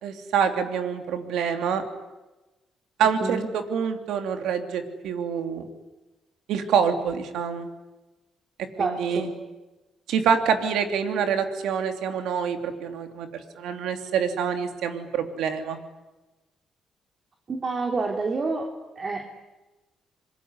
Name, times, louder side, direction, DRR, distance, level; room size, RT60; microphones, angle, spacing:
voice 1, 0.0-1.8 3.0-5.6 6.5-7.7 8.8-9.3 10.1-13.3 13.6-15.8, right 7 dB, 85° right, 6 dB, 3.1 m, -26 dB
voice 2, 8.8-9.3 17.5-18.7 19.0-19.3, right 3 dB, 40° right, 2 dB, 3.6 m, -28 dB
26.0 x 22.0 x 9.7 m, 1.1 s
cardioid pair, 80°, 0 cm